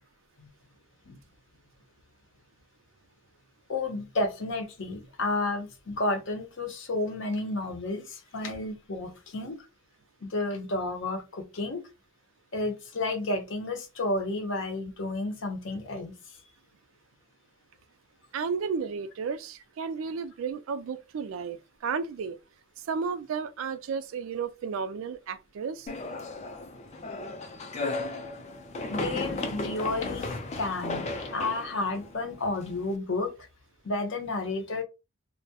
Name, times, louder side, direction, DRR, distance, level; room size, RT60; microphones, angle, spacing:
voice 1, 3.7-9.6 10.2-11.8 12.5-16.1 28.9-33.3 33.8-34.8, left 2 dB, 70° left, 0.7 m, -31 dB
voice 2, 18.3-22.4 22.9-25.9, right 5 dB, 80° right, 0.3 m, -33 dB
sound 1, 25.9-32.9, left 2 dB, 35° left, 0.4 m, -35 dB
2.2 x 2.0 x 2.7 m
head